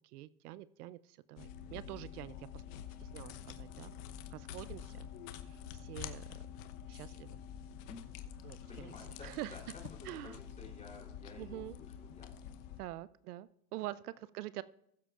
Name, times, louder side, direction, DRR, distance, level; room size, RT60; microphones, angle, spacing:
voice 1, 0.1-2.6 3.0-3.9 4.3-6.4 6.9-7.4 8.4-8.9 9.2-9.6 10.0-10.4 11.4-11.8 12.8-14.6, right 15 dB, 80° right, 17 dB, 0.6 m, -46 dB
sound 1, 1.4-12.8, left 9 dB, 60° left, 1.0 m, -47 dB
voice 2, 7.8-8.2 8.7-9.6 9.9-12.5, left 3 dB, 15° left, 0 dB, 3.4 m, -53 dB
20.0 x 7.5 x 2.5 m, 0.74 s
supercardioid pair, 120°, 45 cm